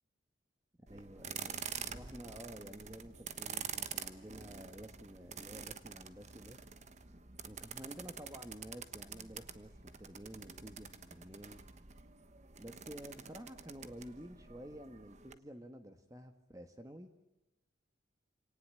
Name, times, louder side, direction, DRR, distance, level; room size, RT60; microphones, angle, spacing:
voice 1, 0.9-6.6 7.5-9.7 10.0-11.6 12.6-17.1, equal, 20° right, 7 dB, 1.4 m, -51 dB
sound 1, 0.9-15.3, right 7 dB, 35° right, 1.2 m, -47 dB
28.0 x 18.5 x 8.9 m, 1.0 s
head